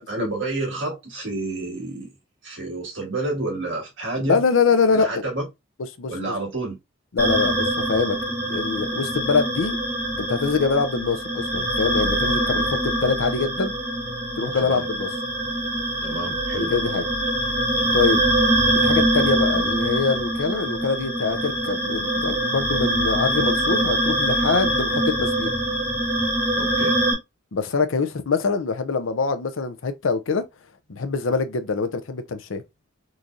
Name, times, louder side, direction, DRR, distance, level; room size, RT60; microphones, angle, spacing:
voice 1, 0.0-2.1 2.4-4.4 4.9-5.5 6.1-6.8 14.5-14.9 16.0-16.7 26.6-27.0, right 2 dB, 65° right, 1.8 m, -29 dB
voice 2, 4.3-5.1 6.0-6.3 7.1-8.2 8.5-9.8 10.2-13.7 14.4-15.1 16.5-17.0 17.9-18.2 18.7-25.5 27.5-30.4 30.9-32.6, left 4 dB, 80° left, 0.6 m, -24 dB
sound 1, 7.2-27.1, right 1 dB, 10° right, 1.1 m, -24 dB
3.8 x 3.0 x 2.5 m
head